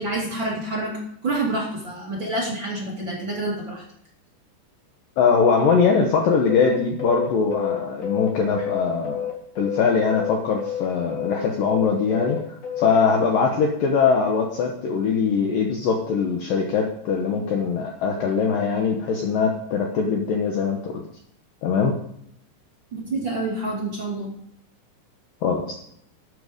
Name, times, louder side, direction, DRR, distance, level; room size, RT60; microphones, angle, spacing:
voice 1, 0.0-3.8 22.9-24.3, right 2 dB, 30° right, -4 dB, 2.6 m, -28 dB
voice 2, 5.2-9.3 9.6-12.4 12.8-21.0 21.6-21.9 25.4-25.7, left 5 dB, 70° left, 1 dB, 2.3 m, -22 dB
sound 1, 6.5-9.8 10.1-12.9, left 9 dB, 45° left, 2.8 m, -29 dB
12.5 x 8.3 x 5.1 m, 0.72 s
omnidirectional pair, 5.1 m